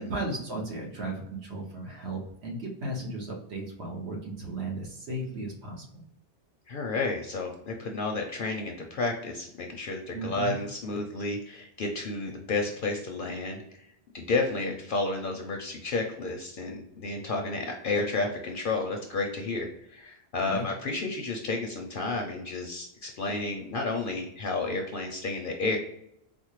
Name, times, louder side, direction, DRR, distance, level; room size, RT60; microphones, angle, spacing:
voice 1, 0.0-6.0 10.1-10.6 20.4-20.7, right 1 dB, 75° right, 0 dB, 1.3 m, -35 dB
voice 2, 6.7-13.8 14.1-25.8, left 3 dB, 60° left, 2 dB, 0.6 m, -31 dB
4.3 x 2.0 x 3.0 m, 0.76 s
omnidirectional pair, 1.1 m